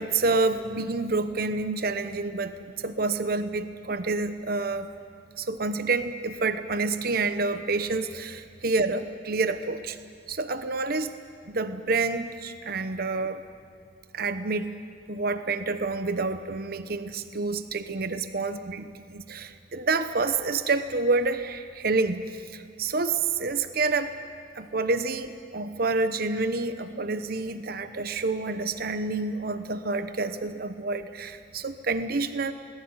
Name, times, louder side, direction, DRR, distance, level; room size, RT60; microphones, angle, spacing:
voice 1, 0.0-4.9 5.4-10.0 10.3-11.1 11.5-13.4 14.1-14.8 15.1-24.1 24.5-32.5, right 3 dB, 55° right, 10 dB, 0.9 m, -28 dB
22.0 x 18.5 x 9.7 m, 2.2 s
head